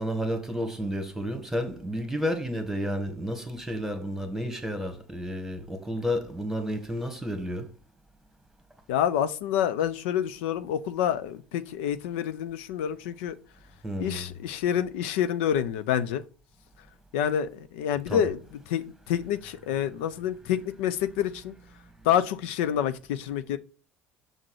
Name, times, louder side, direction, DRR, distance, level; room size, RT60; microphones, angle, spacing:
voice 1, 0.0-7.7 13.8-14.3 18.1-18.3, equal, 5° right, 1.5 m, -31 dB
voice 2, 8.9-13.4 14.0-16.2 17.1-18.4 18.7-21.5 22.0-23.6, left 9 dB, 65° left, 0.5 m, -27 dB
6.5 x 3.7 x 4.8 m
figure-of-eight pair, 65°, 7 cm